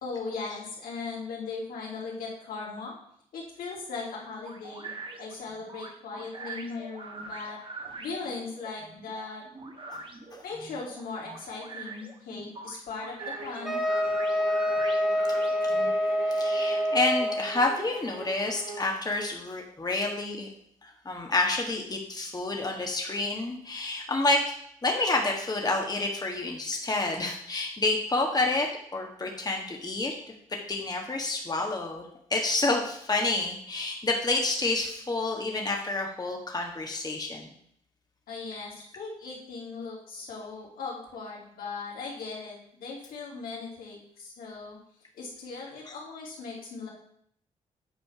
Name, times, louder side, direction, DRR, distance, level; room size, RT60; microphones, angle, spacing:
voice 1, 0.0-2.9 3.3-4.9 5.2-7.6 8.0-9.5 10.4-13.8 38.3-44.8 45.1-46.9, left 4 dB, 75° left, -3 dB, 2.8 m, -38 dB
sound 1, 4.4-15.9, right 3 dB, 35° right, 1.6 m, -43 dB
sound 2, 13.2-18.9, right 4 dB, 75° right, 1.3 m, -42 dB
Wind instrument woodwind instrument, 13.6-17.5, equal, ahead, 1.6 m, -26 dB
voice 2, 16.3-20.5 20.8-24.4 24.8-28.7 28.9-30.1 30.7-32.0 32.3-37.5, left 2 dB, 25° left, 1 dB, 1.5 m, -29 dB
8.5 x 4.3 x 5.7 m, 0.67 s
supercardioid pair, 55°, 15 cm